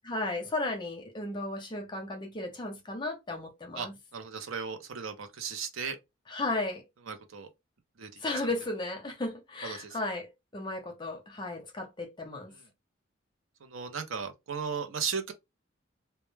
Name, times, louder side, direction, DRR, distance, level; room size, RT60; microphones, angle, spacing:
voice 1, 0.0-4.0 6.3-6.8 8.2-12.5, left 2 dB, 25° left, 0.6 m, -35 dB
voice 2, 4.1-6.0 7.1-7.5 8.0-8.2 9.6-10.0 12.5-12.7 13.6-15.3, right 6 dB, 80° right, 0.6 m, -36 dB
2.2 x 2.1 x 3.1 m
head